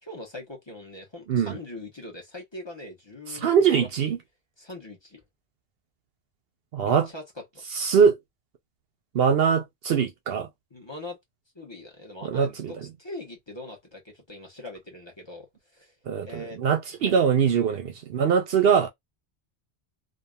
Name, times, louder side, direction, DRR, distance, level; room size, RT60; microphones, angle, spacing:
voice 1, 0.0-3.9 4.6-5.2 6.8-7.6 10.7-11.2 11.5-15.5 15.7-15.9 16.2-16.6 17.0-17.3, left 1 dB, 25° left, 1.1 m, -41 dB
voice 2, 3.3-4.2 6.7-7.1 7.7-8.2 9.1-10.5 12.2-12.7 16.1-18.9, right 7 dB, 65° right, 0.7 m, -22 dB
2.7 x 2.5 x 2.2 m
omnidirectional pair, 1.2 m